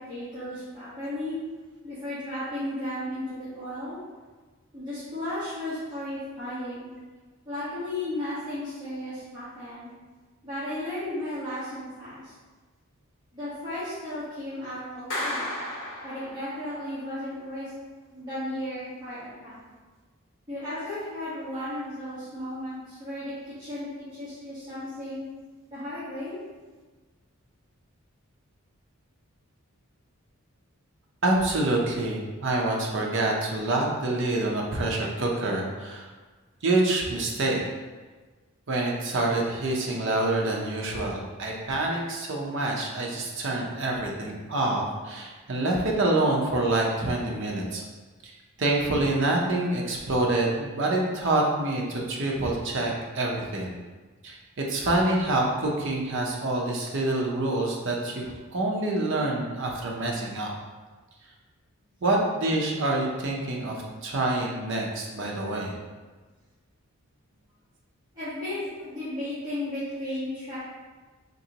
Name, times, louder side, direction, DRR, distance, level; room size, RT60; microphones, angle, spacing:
voice 1, 0.1-1.3 1.8-4.0 4.7-6.9 7.4-9.9 10.4-12.3 13.3-15.5 16.0-17.7 18.1-19.6 20.5-25.2 25.7-26.3 68.1-70.6, left 1 dB, 20° right, -16 dB, 1.3 m, -34 dB
Clapping, 15.1-16.8, left 1 dB, 70° left, 0.9 m, -33 dB
voice 2, 31.2-36.1 36.6-37.6 38.7-47.8 48.2-48.3 48.6-53.7 54.2-60.5 62.0-65.7, right 2 dB, 55° right, -1 dB, 0.6 m, -26 dB
3.9 x 2.9 x 2.8 m, 1.3 s
head